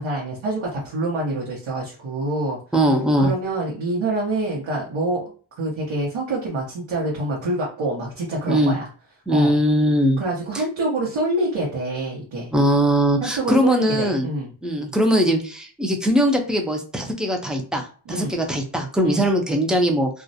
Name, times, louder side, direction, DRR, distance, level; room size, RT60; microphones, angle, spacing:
voice 1, 0.0-2.6 3.2-5.2 5.6-8.9 9.3-9.6 10.2-12.5 13.2-14.5 18.1-18.3 19.0-19.2, right 2 dB, 75° right, -5 dB, 0.9 m, -26 dB
voice 2, 2.7-3.3 8.5-8.7 9.3-10.2 12.5-14.3 14.6-20.1, equal, ahead, 3 dB, 0.3 m, -20 dB
2.4 x 2.0 x 2.6 m, 0.40 s
wide cardioid pair, 105°, 49 cm